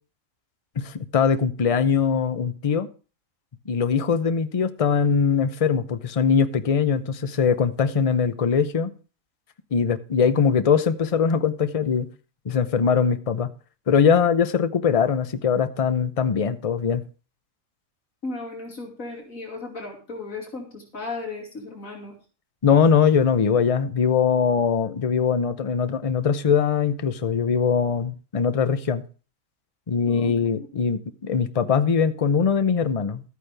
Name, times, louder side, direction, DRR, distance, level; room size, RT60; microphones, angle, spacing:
voice 1, 0.8-2.9 3.7-8.9 9.7-12.1 12.5-13.5 13.9-17.0 22.6-29.0 29.9-33.2, left 6 dB, 35° left, 11 dB, 0.6 m, -21 dB
voice 2, 18.2-22.1 30.1-30.3, left 3 dB, 85° left, 0 dB, 3.1 m, -35 dB
13.0 x 9.3 x 3.4 m, 0.36 s
omnidirectional pair, 1.4 m